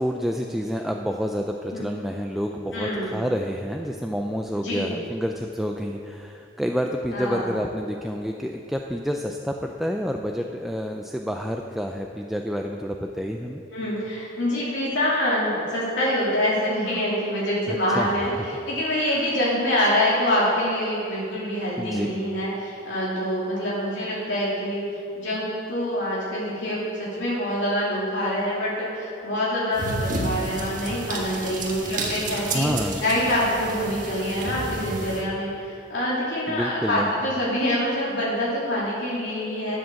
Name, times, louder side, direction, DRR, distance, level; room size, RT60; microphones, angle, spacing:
voice 1, 0.0-13.6 17.7-18.5 19.0-19.1 21.8-22.2 32.3-33.0 36.5-37.1, equal, ahead, 2 dB, 0.4 m, -29 dB
voice 2, 2.7-3.2 4.6-4.9 7.1-7.5 13.7-32.7 33.0-39.8, equal, 85° left, -7 dB, 3.2 m, -25 dB
sound 1, 29.7-35.2, right 2 dB, 45° right, 1.5 m, -31 dB
11.0 x 7.9 x 7.0 m, 2.6 s
head